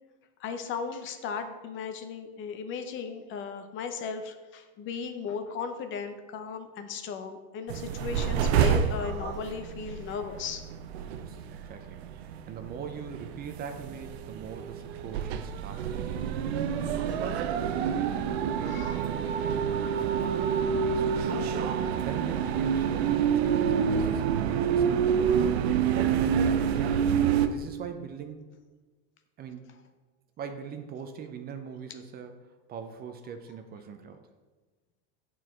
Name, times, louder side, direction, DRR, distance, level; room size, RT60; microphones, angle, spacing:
voice 1, 0.4-10.6 16.8-17.0 18.6-19.0, left 5 dB, 40° left, 7 dB, 0.7 m, -36 dB
sound 1, 7.7-27.5, right 7 dB, 80° right, 0.6 m, -28 dB
voice 2, 11.0-16.5 17.0-21.3 21.9-25.5 25.9-26.9 27.4-28.4 29.4-29.7 30.4-34.2, right 6 dB, 30° right, 7 dB, 0.5 m, -42 dB
6.2 x 4.7 x 4.5 m, 1.3 s
supercardioid pair, 115°, 31 cm